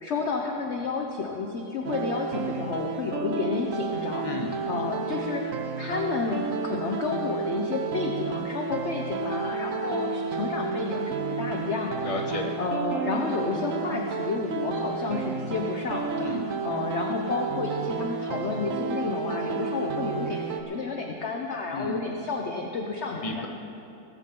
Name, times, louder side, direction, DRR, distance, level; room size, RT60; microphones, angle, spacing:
voice 1, 0.0-4.3 4.7-5.4 5.8-12.0 12.6-16.3 16.6-23.5, left 4 dB, 50° left, 2 dB, 0.9 m, -31 dB
sound 1, 1.8-20.6, right 4 dB, 55° right, 1.0 m, -31 dB
voice 2, 4.2-4.7 12.0-12.6 16.2-16.4 21.7-22.0 23.2-23.5, left 1 dB, 20° left, 1 dB, 1.1 m, -33 dB
17.5 x 14.0 x 3.8 m, 2.7 s
omnidirectional pair, 2.0 m